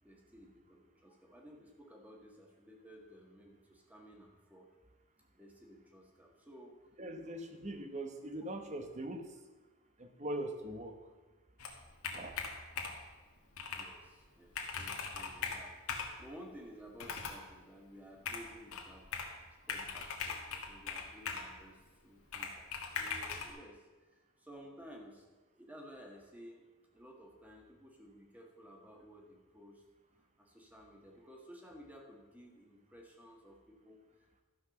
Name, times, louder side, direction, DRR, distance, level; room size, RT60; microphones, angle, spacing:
voice 1, 0.0-4.8 5.3-6.8 13.7-19.1 19.7-26.6 26.9-29.8 30.4-34.4, equal, 5° right, 1 dB, 1.6 m, -55 dB
voice 2, 7.0-9.3 10.0-11.0 12.1-12.4, right 1 dB, 30° right, 6 dB, 1.1 m, -41 dB
Computer keyboard, 11.6-13.1 13.6-13.9 14.2-14.3 14.5-16.2 17.0-17.5 18.3-19.4 19.7-21.5 22.3-23.5, left 5 dB, 85° left, 1.6 m, -40 dB
12.5 x 6.0 x 7.0 m, 1.2 s
head